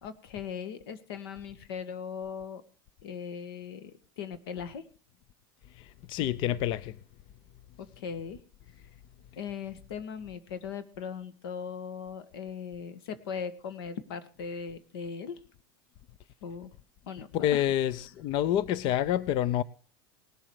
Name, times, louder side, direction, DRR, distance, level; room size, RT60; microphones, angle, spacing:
voice 1, 0.0-2.6 3.0-4.8 7.8-8.4 9.4-15.4 16.4-16.7 17.1-17.6, left 6 dB, 90° left, 1.9 m, -39 dB
voice 2, 5.8-7.0 17.3-19.6, left 12 dB, 45° left, 0.5 m, -28 dB
19.5 x 7.4 x 4.9 m
supercardioid pair, 150°, 12 cm